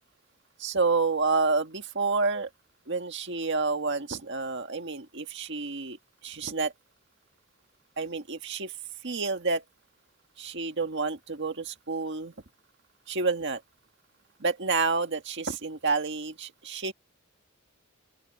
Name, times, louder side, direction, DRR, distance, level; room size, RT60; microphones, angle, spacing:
voice 1, 0.6-2.5 2.9-6.0 6.2-6.7 8.0-8.7 9.0-9.6 10.4-12.3 13.1-13.6 14.4-16.9, right 4 dB, 60° right, 1.8 m, -29 dB
open air
head